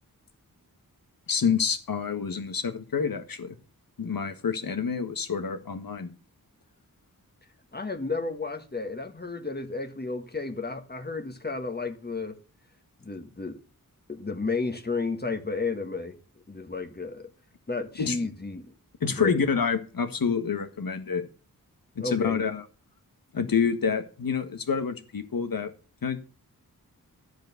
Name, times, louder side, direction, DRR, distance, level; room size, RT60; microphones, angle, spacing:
voice 1, 1.3-3.5 4.0-6.1 18.0-18.2 19.0-21.2 22.0-22.6 23.3-25.7 26.0-26.2, left 6 dB, 75° left, 1.6 m, -27 dB
voice 2, 7.7-12.4 13.0-13.6 14.1-16.2 16.5-17.3 17.7-18.7 19.1-19.4 22.0-22.5, left 3 dB, 30° left, 1.5 m, -32 dB
12.5 x 5.1 x 8.2 m
wide cardioid pair, 105°, 35 cm